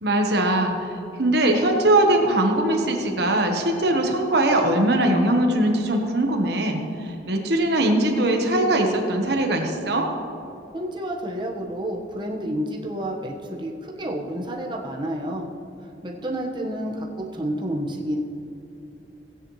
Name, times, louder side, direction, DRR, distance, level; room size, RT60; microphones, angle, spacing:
voice 1, 0.0-0.9 1.2-10.1, right 1 dB, 60° right, 3 dB, 1.2 m, -21 dB
voice 2, 10.7-15.5 16.0-18.2, right 1 dB, 25° right, -1 dB, 1.2 m, -30 dB
16.5 x 9.6 x 3.2 m, 2.8 s
head